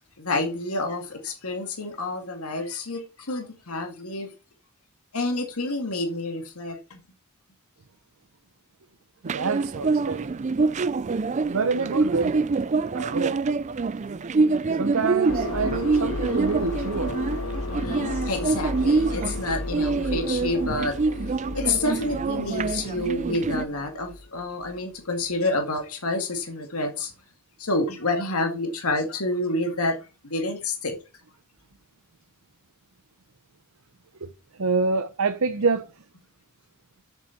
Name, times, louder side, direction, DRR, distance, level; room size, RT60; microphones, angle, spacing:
voice 1, 0.2-4.3 5.1-7.0 17.7-21.0 21.5-27.1 27.6-31.0, left 2 dB, 90° left, 2.1 m, -28 dB
voice 2, 9.2-10.3 11.5-12.4 12.9-13.4 14.8-17.2 34.2-34.3 34.6-35.9, right 4 dB, 70° right, 0.7 m, -26 dB
sound 1, 9.3-23.6, right 4 dB, 35° right, 0.4 m, -26 dB
sound 2, 15.3-24.8, left 2 dB, 65° left, 1.6 m, -34 dB
7.0 x 7.0 x 5.7 m
head